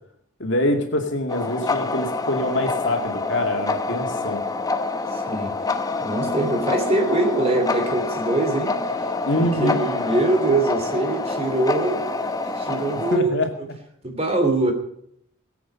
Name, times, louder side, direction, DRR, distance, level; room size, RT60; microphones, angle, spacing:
voice 1, 0.4-4.4 9.3-9.8 13.1-13.5, left 1 dB, 60° left, 4 dB, 2.4 m, -24 dB
sound 1, 1.3-13.2, left 3 dB, 20° left, 0.9 m, -27 dB
voice 2, 5.1-5.5 6.0-8.7 9.4-12.3 12.6-13.3 14.0-14.7, right 2 dB, 30° right, 5 dB, 2.9 m, -23 dB
21.0 x 8.5 x 5.7 m, 0.69 s
head